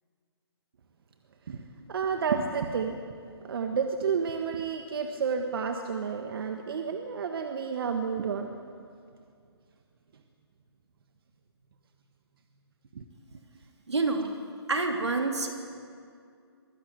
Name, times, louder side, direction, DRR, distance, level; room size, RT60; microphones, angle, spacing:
voice 1, 1.5-3.0 3.4-8.6 12.9-13.1, right 6 dB, 60° right, 5 dB, 1.5 m, -30 dB
voice 2, 13.9-14.3 14.7-15.6, right 3 dB, 85° right, 3 dB, 3.4 m, -27 dB
23.5 x 16.0 x 8.1 m, 2.3 s
hypercardioid pair, 145°, 14 cm